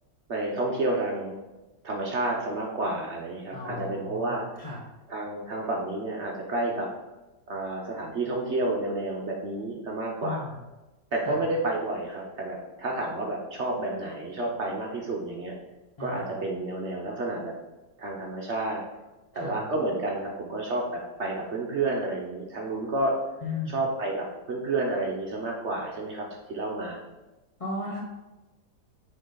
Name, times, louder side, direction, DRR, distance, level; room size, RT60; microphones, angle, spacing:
voice 1, 0.3-1.4 1.8-4.4 5.1-6.9 7.5-10.5 11.1-15.5 16.0-17.5 18.0-18.8 19.3-23.1 23.7-27.0, right 2 dB, 55° right, -1 dB, 0.8 m, -30 dB
voice 2, 3.5-4.8 10.2-10.6 11.2-11.4 16.0-16.3 19.3-19.6 23.4-23.8 27.6-28.0, left 3 dB, 65° left, -3 dB, 0.3 m, -35 dB
6.5 x 4.3 x 3.8 m, 1.1 s
omnidirectional pair, 2.1 m